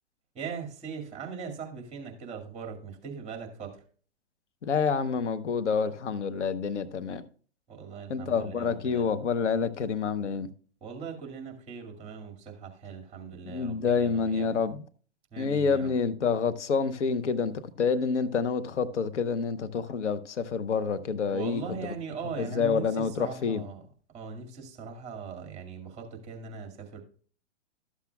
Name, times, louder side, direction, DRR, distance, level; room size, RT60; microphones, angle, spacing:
voice 1, 0.3-3.8 7.7-9.2 10.8-14.5 15.3-15.9 21.3-23.8 24.1-27.0, right 6 dB, 20° right, 2.1 m, -40 dB
voice 2, 4.6-7.2 8.1-10.5 13.4-14.8 15.4-21.9 22.4-23.6, left 5 dB, 85° left, 0.9 m, -28 dB
13.0 x 7.2 x 2.3 m
hypercardioid pair, 130°, 35 cm